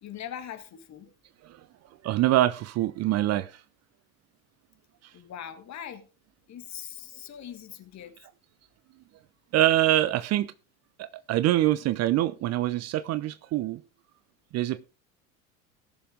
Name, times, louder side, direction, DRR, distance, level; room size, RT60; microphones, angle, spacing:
voice 1, 0.0-1.1 5.1-6.1 6.5-8.1, left 9 dB, 40° left, 2.0 m, -41 dB
voice 2, 2.0-3.5 9.5-10.5 11.0-13.8 14.5-14.8, right 14 dB, 35° right, 0.6 m, -24 dB
18.0 x 6.8 x 3.6 m
hypercardioid pair, 75°, 44 cm